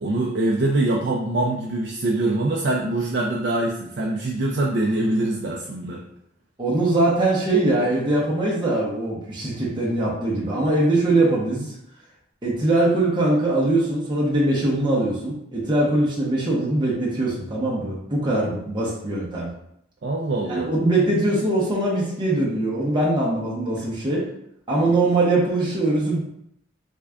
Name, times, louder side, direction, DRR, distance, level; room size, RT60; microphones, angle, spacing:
voice 1, 0.0-6.0 20.0-20.7, right 2 dB, 60° right, -2 dB, 0.4 m, -24 dB
voice 2, 6.6-11.7 12.4-19.5 20.4-24.2 24.7-26.2, right 2 dB, 25° right, -5 dB, 0.8 m, -22 dB
3.5 x 2.4 x 3.3 m, 0.74 s
head